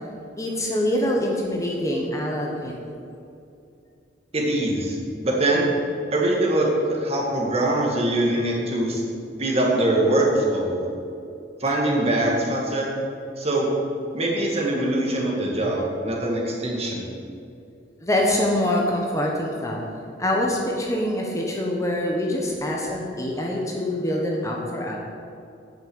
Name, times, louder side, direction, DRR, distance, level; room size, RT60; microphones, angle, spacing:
voice 1, 0.4-2.7 18.0-19.8 20.2-25.0, left 1 dB, 20° left, -1 dB, 1.1 m, -25 dB
voice 2, 4.3-5.0 5.2-5.7 6.1-9.0 9.4-10.8 11.6-12.9 13.4-13.7 14.1-17.1, right 1 dB, 35° right, -2 dB, 1.8 m, -23 dB
8.8 x 6.0 x 7.8 m, 2.5 s
head